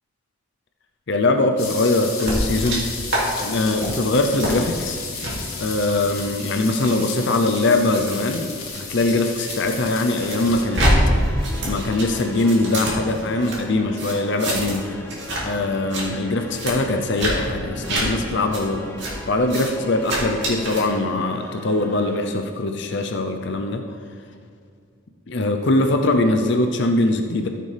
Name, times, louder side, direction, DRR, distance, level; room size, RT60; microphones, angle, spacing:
voice 1, 1.1-2.9 3.4-5.0 5.6-10.9 11.4-15.0 15.4-18.9 19.3-23.8 25.3-27.5, left 2 dB, 55° left, 5 dB, 0.6 m, -22 dB
sound 1, 1.6-10.6, left 4 dB, 80° left, 2.1 m, -33 dB
sound 2, 2.2-2.8 3.1-3.2 3.6-3.9 4.4-4.5 5.1-5.3 6.0-9.6 9.9-10.9 11.2-13.6 14.0-14.8 15.1-15.4 15.7-16.0 16.5-16.7 17.2-17.3 17.8-18.0 18.5-18.6 19.0-19.1 19.5-19.7 20.0-20.8, right 1 dB, 55° right, 2.6 m, -27 dB
sound 3, 10.2-22.2, left 1 dB, 10° left, 0.6 m, -38 dB
14.5 x 6.7 x 3.4 m, 2.2 s
head